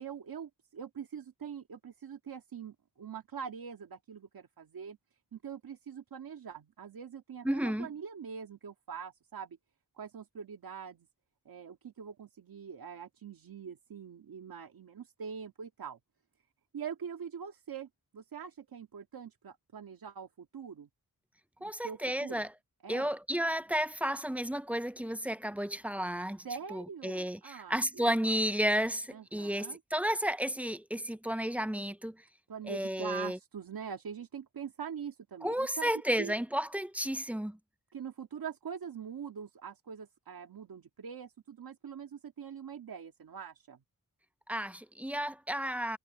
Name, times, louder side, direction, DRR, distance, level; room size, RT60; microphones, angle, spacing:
voice 1, 0.0-5.0 5.3-9.6 10.0-11.1 11.5-16.0 16.7-17.9 18.1-20.9 21.6-22.5 22.8-23.1 26.4-28.4 29.1-29.8 32.5-35.9 36.2-36.3 37.9-43.8, right 7 dB, 85° right, 1.9 m, -43 dB
voice 2, 7.4-7.9 21.6-22.5 22.9-26.5 26.7-32.2 32.7-33.4 35.4-37.6 44.5-46.0, equal, 5° right, 0.4 m, -32 dB
wide cardioid pair, 175°, 35 cm